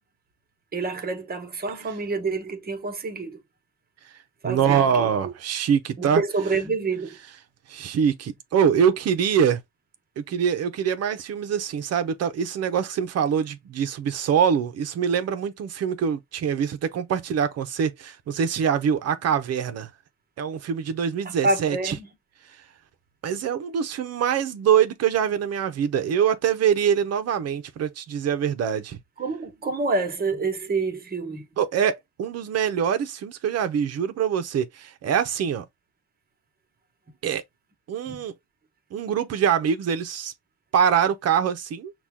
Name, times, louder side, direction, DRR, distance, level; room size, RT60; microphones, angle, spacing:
voice 1, 0.7-3.4 4.4-5.1 6.0-7.2 21.4-22.1 29.2-31.5 38.1-38.2, right 3 dB, 30° right, 1.3 m, -27 dB
voice 2, 4.4-6.2 7.7-9.6 10.2-19.9 20.4-21.9 23.2-29.0 31.6-35.6 37.2-37.4 37.9-38.3 38.9-40.3 40.7-41.9, right 8 dB, 60° right, 0.7 m, -24 dB
6.0 x 2.3 x 3.5 m
cardioid pair, 135°, 29 cm